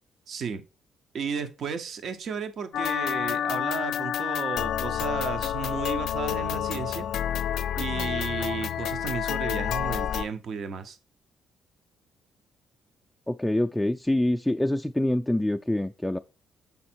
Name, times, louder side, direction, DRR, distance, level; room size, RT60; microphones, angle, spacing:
voice 1, 0.3-0.6 1.1-7.1 7.8-11.0, right 6 dB, 60° right, 0.7 m, -34 dB
sound 1, 2.7-10.3, left 10 dB, 75° left, 0.4 m, -29 dB
voice 2, 13.3-16.2, left 1 dB, 5° left, 0.3 m, -25 dB
7.0 x 4.3 x 4.4 m
cardioid pair, 90°, 0 cm